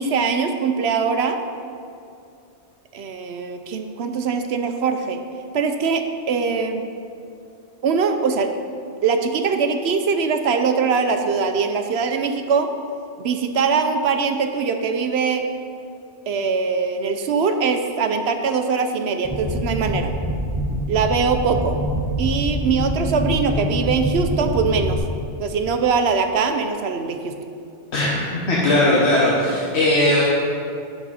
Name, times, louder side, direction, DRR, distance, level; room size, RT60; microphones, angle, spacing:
voice 1, 0.0-1.4 2.9-5.2 5.5-6.9 7.8-8.5 9.0-12.7 13.2-15.4 16.3-20.1 20.9-21.8 22.2-25.0 25.4-27.3, right 5 dB, 65° right, 6 dB, 0.8 m, -22 dB
sound 1, 19.2-25.0, equal, 15° right, 0.5 m, -25 dB
voice 2, 27.9-30.2, left 1 dB, 65° left, -5 dB, 1.5 m, -18 dB
9.7 x 7.0 x 4.1 m, 2.5 s
omnidirectional pair, 1.2 m